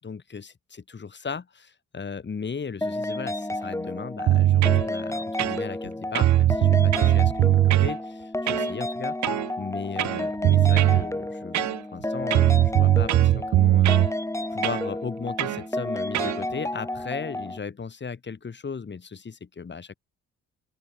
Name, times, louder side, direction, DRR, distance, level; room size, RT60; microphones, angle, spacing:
voice 1, 0.0-9.2 9.6-11.6 11.9-13.9 14.5-19.9, left 5 dB, 35° left, 6.3 m, -36 dB
sound 1, 2.8-17.6, left 1 dB, 10° left, 6.2 m, -31 dB
sound 2, 4.3-4.9 5.4-5.9 6.1-7.9 8.5-8.7 9.2-9.5 10.0-11.0 11.5-12.0 12.3-14.1 14.6-14.9 15.4-15.6 16.1-16.4, right 14 dB, 70° right, 0.9 m, -20 dB
open air
cardioid pair, 90°, 30 cm